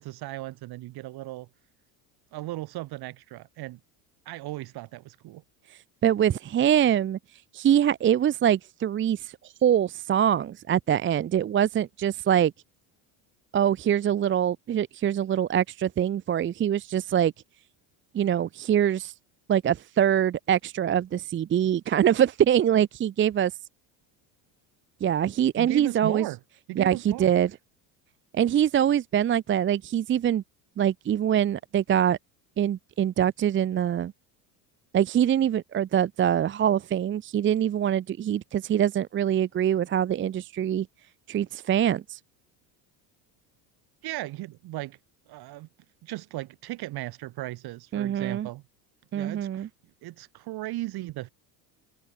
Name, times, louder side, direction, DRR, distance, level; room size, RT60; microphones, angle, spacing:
voice 1, 0.0-1.5 2.3-3.8 4.2-5.4 25.6-26.4 26.7-27.3 44.0-45.0 45.3-45.7 46.0-48.6 49.1-49.7 50.0-51.3, right 17 dB, 60° right, 6.6 m, -36 dB
voice 2, 6.0-7.2 7.5-9.3 9.6-12.5 13.5-17.3 18.1-19.1 19.5-23.5 25.0-26.3 26.8-27.5 28.3-30.4 30.8-32.2 32.6-34.1 34.9-40.9 41.3-42.2 47.9-48.5 49.1-49.7, right 10 dB, 30° right, 0.7 m, -24 dB
open air
cardioid pair, 120°, 42 cm